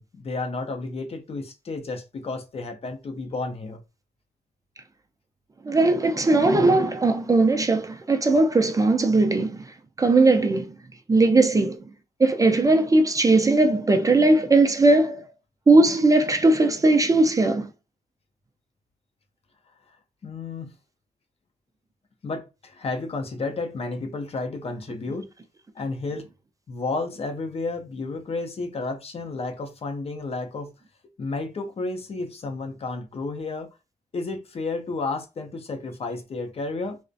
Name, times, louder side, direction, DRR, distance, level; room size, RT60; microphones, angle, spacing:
voice 1, 0.0-3.8 19.9-20.0 20.2-20.7 22.2-25.3 25.8-26.3 26.7-30.7 31.2-33.7 34.1-37.0, left 3 dB, 40° left, 0.5 m, -32 dB
voice 2, 5.6-9.6 10.0-10.8 11.1-11.8 12.2-15.2 15.7-17.7, right 2 dB, 25° right, 0.4 m, -19 dB
2.4 x 2.0 x 2.5 m
cardioid pair, 80°, 15 cm